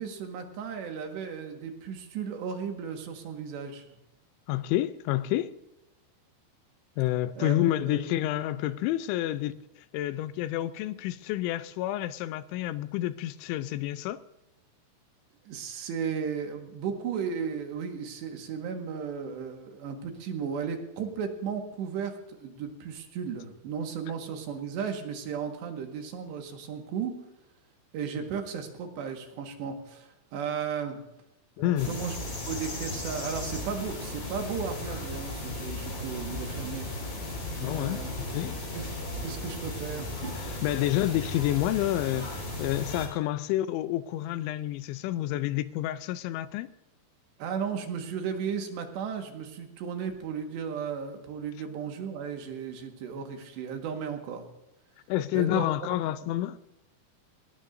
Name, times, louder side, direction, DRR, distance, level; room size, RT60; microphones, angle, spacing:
voice 1, 0.0-4.0 7.4-7.5 7.9-8.0 15.5-27.1 27.9-31.0 31.6-32.2 32.5-36.9 37.6-38.2 38.7-38.9 39.2-40.1 47.4-54.4 55.3-55.7, right 7 dB, 70° right, 3.6 m, -35 dB
voice 2, 4.5-5.6 7.0-9.5 9.9-14.2 31.6-31.9 37.6-38.6 40.4-46.7 55.1-56.6, left 14 dB, 85° left, 2.9 m, -29 dB
sound 1, 31.8-43.1, left 1 dB, 40° left, 6.0 m, -36 dB
20.0 x 18.5 x 2.7 m
omnidirectional pair, 5.4 m